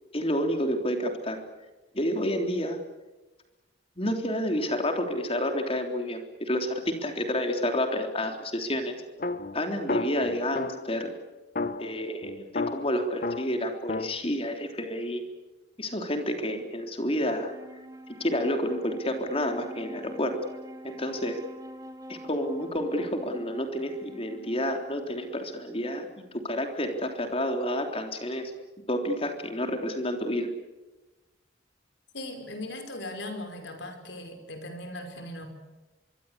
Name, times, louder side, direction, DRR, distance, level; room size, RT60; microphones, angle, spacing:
voice 1, 0.1-1.4 1.9-2.8 4.0-9.0 9.5-11.1 11.8-15.2 15.8-17.5 18.2-20.4 20.8-21.4 22.1-28.5 28.9-30.5, equal, 30° left, 5 dB, 3.6 m, -29 dB
sound 1, 9.2-11.0 11.6-14.2, left 3 dB, 50° left, 1.0 m, -32 dB
Wind instrument woodwind instrument, 17.3-26.8, equal, 20° right, 1.9 m, -46 dB
voice 2, 32.1-35.5, left 1 dB, 70° left, 6 dB, 5.2 m, -38 dB
25.0 x 24.0 x 8.2 m, 1.1 s
head